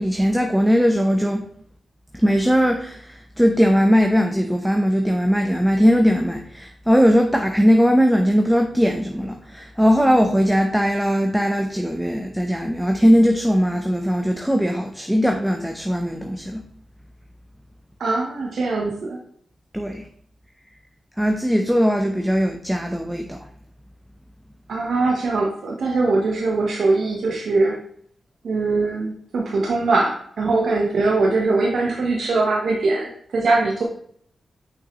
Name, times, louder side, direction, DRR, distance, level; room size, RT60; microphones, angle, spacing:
voice 1, 0.0-1.4 2.1-16.6 19.7-20.0 21.2-23.4, equal, 5° right, 3 dB, 0.8 m, -19 dB
voice 2, 18.0-19.2 24.7-27.8 28.4-33.8, right 3 dB, 75° right, -1 dB, 1.0 m, -21 dB
6.3 x 5.6 x 3.0 m, 0.63 s
cardioid pair, 55°, 0 cm